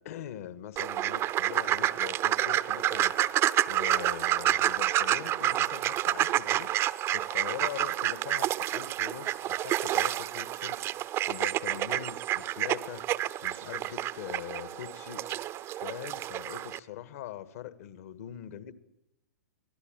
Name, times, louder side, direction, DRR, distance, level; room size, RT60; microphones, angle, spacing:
voice 1, 0.0-6.7 7.1-10.8 11.3-18.7, left 11 dB, 55° left, 1.8 m, -42 dB
sound 1, 0.8-16.8, right 13 dB, 25° right, 0.8 m, -29 dB
24.5 x 17.5 x 9.1 m
figure-of-eight pair, 115°, 9 cm